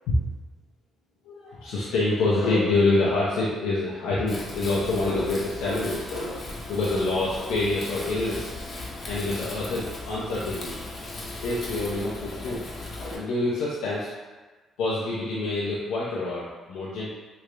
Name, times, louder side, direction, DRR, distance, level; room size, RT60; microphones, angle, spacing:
voice 1, 1.2-8.7 9.0-10.7 11.4-12.7 13.0-14.1 14.8-17.1, left 2 dB, 90° left, -7 dB, 0.6 m, -26 dB
Wind, 4.3-13.1, left 2 dB, 45° left, 0.7 m, -37 dB
3.2 x 2.4 x 3.2 m, 1.3 s
cardioid pair, 90°, 0 cm